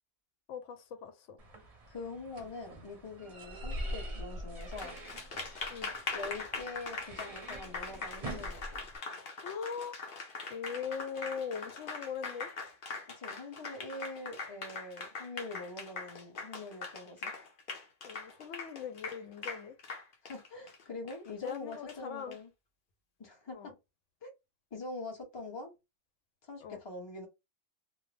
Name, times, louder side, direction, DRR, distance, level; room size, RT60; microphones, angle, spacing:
voice 1, 0.5-1.4 5.7-5.9 9.4-10.0 10.5-12.5 18.0-19.8 21.4-22.4 23.5-23.7 26.6-26.8, left 6 dB, 85° left, 0.9 m, -40 dB
sound 1, 1.4-9.0, equal, 40° right, 0.6 m, -44 dB
voice 2, 1.9-5.0 6.1-8.8 13.1-17.3 20.2-22.5 23.2-23.7 24.2-24.3 24.7-25.7 26.5-27.3, left 2 dB, 25° left, 0.9 m, -44 dB
Applause, 4.6-22.4, left 4 dB, 50° left, 0.8 m, -42 dB
2.6 x 2.0 x 3.1 m
omnidirectional pair, 1.2 m